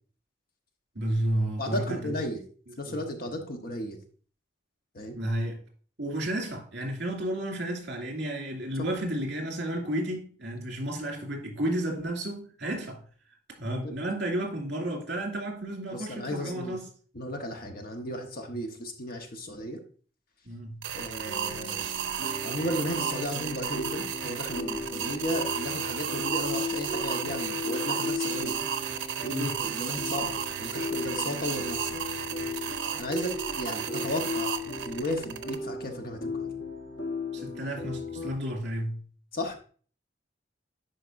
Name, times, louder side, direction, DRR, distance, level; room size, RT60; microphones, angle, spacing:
voice 1, 0.9-2.1 2.7-3.0 5.2-5.6 6.0-13.0 13.6-16.9 18.5-18.6 20.4-20.8 29.2-29.6 37.3-39.0, right 1 dB, 65° right, 2.4 m, -32 dB
voice 2, 1.6-2.4 2.8-4.0 4.9-5.2 13.7-13.9 15.9-16.8 17.1-19.8 20.9-21.8 22.4-28.6 29.2-32.0 33.0-34.6 34.9-36.5 39.3-39.5, left 1 dB, 55° left, 1.2 m, -34 dB
sound 1, 20.8-35.6, right 9 dB, 85° right, 0.6 m, -33 dB
sound 2, 21.3-38.3, left 3 dB, 80° left, 1.3 m, -36 dB
11.0 x 4.6 x 2.6 m
head